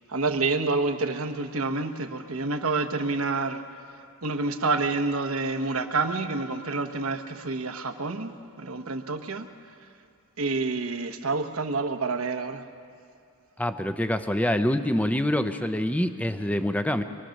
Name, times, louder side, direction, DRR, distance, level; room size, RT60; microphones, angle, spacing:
voice 1, 0.1-3.6 4.2-8.3 8.6-9.5 10.4-12.6, right 3 dB, 70° right, 6 dB, 1.1 m, -28 dB
voice 2, 13.6-17.0, left 1 dB, 5° left, 9 dB, 0.7 m, -25 dB
24.5 x 22.5 x 6.5 m, 2.4 s
head